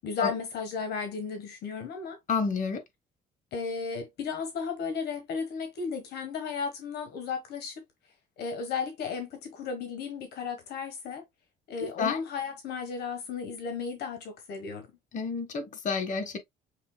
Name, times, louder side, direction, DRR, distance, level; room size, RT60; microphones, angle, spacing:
voice 1, 0.0-2.2 3.5-7.8 8.4-11.2 11.7-14.9, left 5 dB, 75° left, 1.3 m, -34 dB
voice 2, 2.3-2.8 12.0-12.2 15.1-16.4, left 5 dB, 50° left, 1.6 m, -29 dB
6.6 x 3.4 x 2.2 m
cardioid pair, 110°, 17 cm